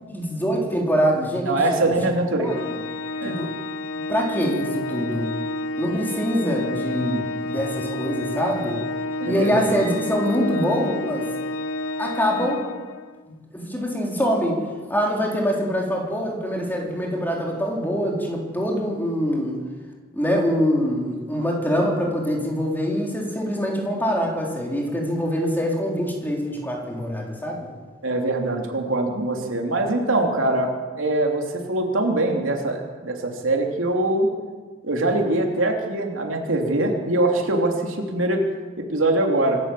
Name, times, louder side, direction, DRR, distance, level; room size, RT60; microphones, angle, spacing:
voice 1, 0.1-1.6 1.8-1.9 2.4-2.5 3.2-3.5 4.1-5.3 5.8-8.8 9.2-11.3 12.0-12.6 13.5-14.6 14.9-19.6 20.1-27.7, equal, 10° left, -1 dB, 4.1 m, -24 dB
voice 2, 1.5-2.6 3.2-3.4 9.2-9.6 28.0-30.7 31.0-34.3 34.8-38.4 38.8-39.6, right 2 dB, 70° right, 2 dB, 3.2 m, -23 dB
Organ, 2.5-13.2, left 2 dB, 85° left, 0.9 m, -30 dB
26.5 x 13.0 x 7.7 m, 1.4 s
head